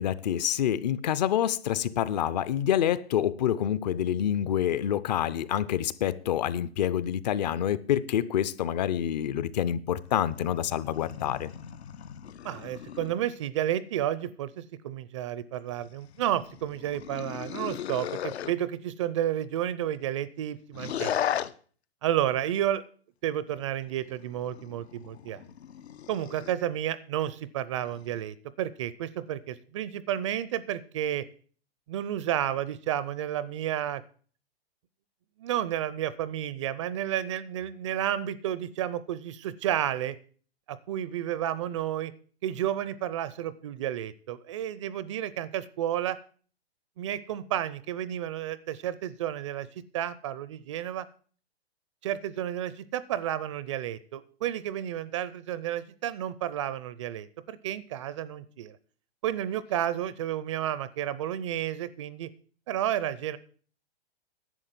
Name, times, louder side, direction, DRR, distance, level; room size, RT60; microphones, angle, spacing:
voice 1, 0.0-11.5, left 10 dB, 40° left, 0.6 m, -27 dB
sound 1, 10.0-13.2 15.7-18.5 20.7-21.5 23.6-26.6 27.8-28.2, left 10 dB, 75° left, 0.9 m, -37 dB
voice 2, 12.4-21.1 22.0-22.8 23.2-25.4 26.1-31.3 31.9-34.0 35.4-40.2 40.7-42.1 42.4-46.2 47.0-49.7 49.9-51.1 52.0-58.8 59.2-62.3 62.7-63.4, right 11 dB, 30° right, 0.4 m, -31 dB
11.0 x 7.5 x 7.5 m
hypercardioid pair, 150°, 32 cm